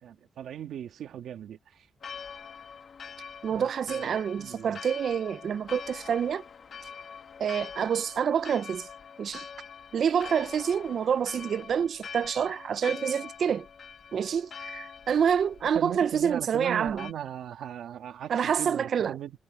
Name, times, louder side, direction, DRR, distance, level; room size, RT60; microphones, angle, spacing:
voice 1, 0.0-1.9 3.5-4.8 15.6-19.3, right 10 dB, 85° right, 2.2 m, -38 dB
Church bell, 2.0-17.1, left 6 dB, 45° left, 1.3 m, -44 dB
voice 2, 3.4-6.4 7.4-8.9 9.2-9.5 9.9-13.7 14.1-17.1 18.3-19.2, right 7 dB, 55° right, 0.5 m, -27 dB
cardioid pair, 135°, 0 cm